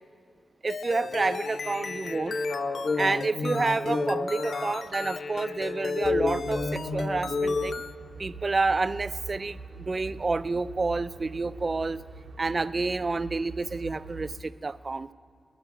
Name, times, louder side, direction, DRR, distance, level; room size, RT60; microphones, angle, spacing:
voice 1, 0.6-2.4 3.0-7.8 8.2-12.0 12.4-15.1, right 3 dB, 35° right, 15 dB, 0.3 m, -29 dB
sound 1, 0.7-7.9, left 5 dB, 60° left, 0.3 m, -38 dB
sound 2, 1.0-7.7, left 3 dB, 80° left, 1.3 m, -30 dB
sound 3, 6.0-14.4, right 4 dB, 75° right, 0.7 m, -43 dB
11.5 x 8.9 x 8.6 m, 2.5 s
wide cardioid pair, 105°, 0 cm